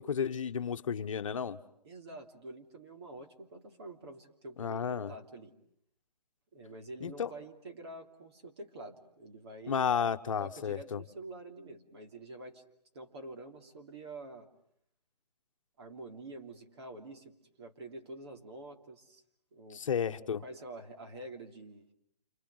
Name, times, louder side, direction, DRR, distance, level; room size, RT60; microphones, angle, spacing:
voice 1, 0.0-1.6 4.6-5.1 7.0-7.3 9.7-11.0 19.7-20.4, left 7 dB, 50° left, 9 dB, 1.3 m, -32 dB
voice 2, 1.8-5.5 6.5-9.9 10.4-12.6 12.9-14.5 15.8-19.2 19.5-21.9, right 2 dB, 40° right, 3 dB, 3.1 m, -47 dB
29.0 x 26.0 x 8.0 m, 0.73 s
hypercardioid pair, 165°, 21 cm